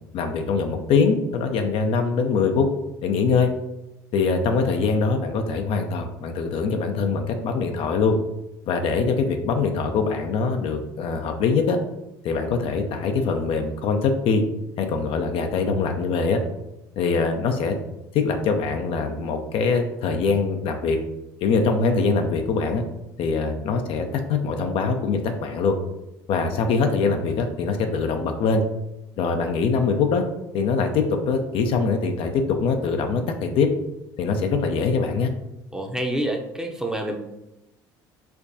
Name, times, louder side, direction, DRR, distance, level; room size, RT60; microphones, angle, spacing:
voice 1, 0.0-2.7 3.0-3.5 4.1-8.2 8.7-11.8 12.2-14.4 14.8-16.4 17.0-17.8 18.1-21.0 21.4-22.8 23.2-25.7 26.3-28.6 29.2-30.3 30.5-33.7 34.2-35.3, left 4 dB, 60° left, 5 dB, 0.5 m, -23 dB
voice 2, 35.7-37.2, right 1 dB, 5° right, 2 dB, 0.6 m, -27 dB
4.4 x 2.2 x 2.7 m, 0.91 s
hypercardioid pair, 70°, 10 cm